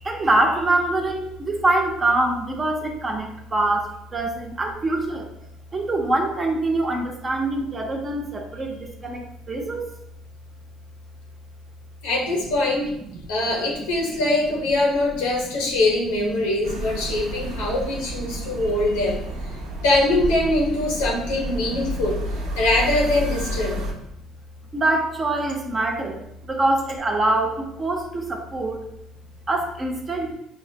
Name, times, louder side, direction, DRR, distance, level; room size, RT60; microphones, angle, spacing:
voice 1, 0.0-5.3 5.7-9.9 13.0-13.2 13.7-14.2 16.7-17.6 17.9-18.7 19.0-19.1 21.5-21.9 23.7-23.8 24.7-28.8 29.5-30.3, right 2 dB, 30° right, 2 dB, 0.8 m, -25 dB
voice 2, 12.0-12.9 13.3-19.2 19.8-22.2 22.6-23.8, left 2 dB, 90° left, -2 dB, 1.1 m, -22 dB
sound 1, 16.6-23.9, right 1 dB, 75° right, 0.8 m, -31 dB
5.6 x 2.1 x 2.8 m, 0.78 s
supercardioid pair, 75°, 0 cm